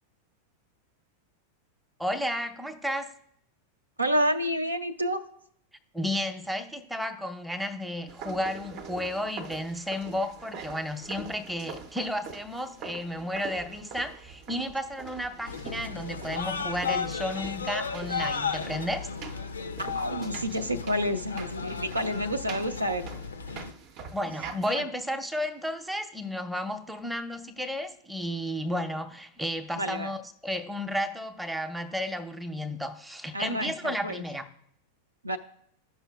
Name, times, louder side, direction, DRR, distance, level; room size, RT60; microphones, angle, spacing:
voice 1, 2.0-3.1 5.9-19.1 24.1-30.2 30.4-34.5, equal, 5° right, 6 dB, 0.6 m, -32 dB
voice 2, 4.0-5.2 19.8-23.1 24.7-24.9 29.8-30.1 33.3-34.2 35.2-35.4, equal, 85° right, 7 dB, 0.5 m, -29 dB
sound 1, 8.1-24.8, right 6 dB, 40° right, 0.6 m, -44 dB
sound 2, 15.5-23.7, left 5 dB, 75° left, 0.4 m, -34 dB
13.5 x 5.6 x 2.3 m, 0.70 s
figure-of-eight pair, 90°, 0 cm